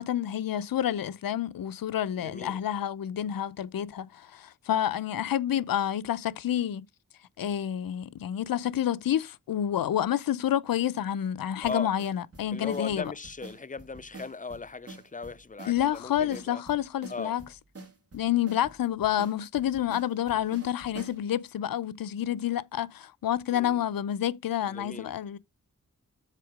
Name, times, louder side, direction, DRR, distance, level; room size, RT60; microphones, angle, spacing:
voice 1, 0.0-6.8 7.4-13.1 15.7-17.4 18.1-25.4, left 11 dB, 85° left, 0.6 m, -29 dB
voice 2, 2.2-2.6 11.6-11.9 12.5-16.6 17.1-17.4 23.5-23.8 24.6-25.1, left 4 dB, 25° left, 0.5 m, -38 dB
sound 1, 11.6-21.2, right 2 dB, 45° right, 2.2 m, -47 dB
7.5 x 3.6 x 5.0 m
wide cardioid pair, 70°, 34 cm